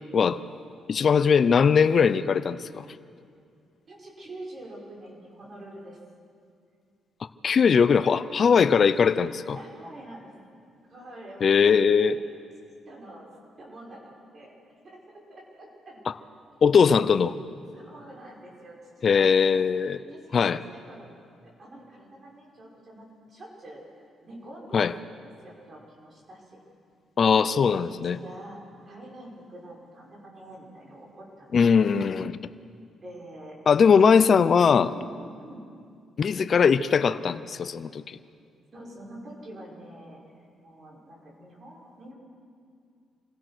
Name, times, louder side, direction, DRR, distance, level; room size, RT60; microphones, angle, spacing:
voice 1, 0.9-2.8 7.4-9.6 11.4-12.2 16.1-16.2 16.6-17.3 19.0-20.0 20.3-20.6 24.7-24.9 27.2-28.2 31.5-32.4 33.7-34.9 36.2-38.2, left 6 dB, 50° left, 13 dB, 0.6 m, -20 dB
voice 2, 3.9-6.0 9.5-10.3 10.9-12.1 12.9-13.3 13.6-14.5 14.8-16.0 17.7-19.6 20.1-21.2 21.6-23.8 24.2-26.6 27.3-27.7 28.0-31.7 33.0-34.1 34.7-35.1 35.4-35.6 38.7-42.1, right 1 dB, 45° right, -3 dB, 6.3 m, -46 dB
26.5 x 17.0 x 6.2 m, 2.3 s
cardioid pair, 90°, 0 cm